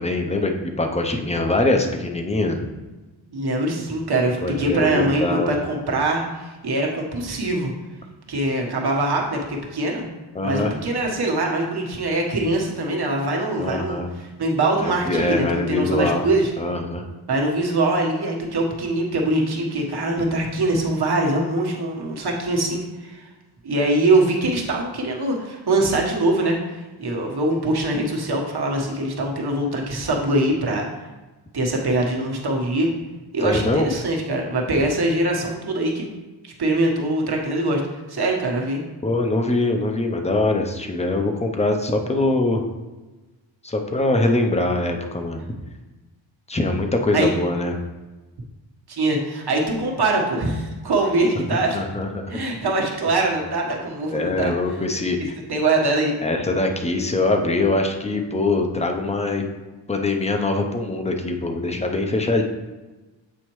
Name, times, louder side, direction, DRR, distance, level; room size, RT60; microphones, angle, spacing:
voice 1, 0.0-2.7 4.4-5.5 10.3-10.8 13.6-14.1 14.8-16.3 16.6-17.0 33.4-33.9 39.0-42.6 43.6-45.4 46.5-47.8 51.7-52.4 54.1-55.4 56.2-59.4 59.9-62.4, left 2 dB, 15° left, 4 dB, 0.6 m, -23 dB
voice 2, 3.3-7.7 8.3-10.1 10.4-16.5 17.3-23.3 23.6-30.9 31.5-32.9 33.3-36.1 36.4-37.8 38.1-38.8 47.1-47.3 48.9-51.8 52.3-54.5 55.5-56.1, right 2 dB, 55° right, -1 dB, 1.3 m, -23 dB
8.2 x 4.3 x 3.1 m, 1.2 s
wide cardioid pair, 115°, 47 cm